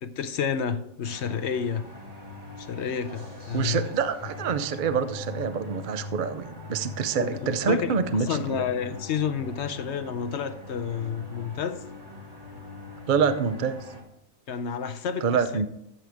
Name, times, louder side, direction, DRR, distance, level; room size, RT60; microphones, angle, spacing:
voice 1, 0.0-1.8 2.6-3.9 7.2-11.9 14.5-15.6, left 7 dB, 60° left, 0.8 m, -30 dB
sound 1, 1.0-14.0, left 3 dB, 25° right, 2.3 m, -42 dB
voice 2, 3.5-8.6 13.1-13.8 15.2-15.7, right 6 dB, 50° right, 0.6 m, -26 dB
13.5 x 7.7 x 3.5 m
omnidirectional pair, 1.4 m